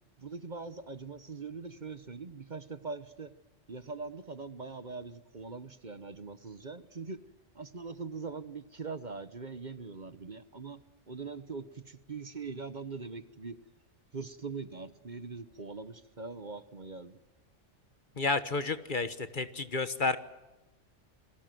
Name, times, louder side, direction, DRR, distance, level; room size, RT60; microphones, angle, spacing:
voice 1, 0.2-3.3 3.7-7.2 7.5-13.6 14.1-17.2, right 4 dB, 40° right, 13 dB, 1.2 m, -42 dB
voice 2, 18.2-20.2, left 3 dB, 45° left, 12 dB, 1.4 m, -31 dB
29.5 x 22.0 x 7.7 m, 1.1 s
omnidirectional pair, 1.2 m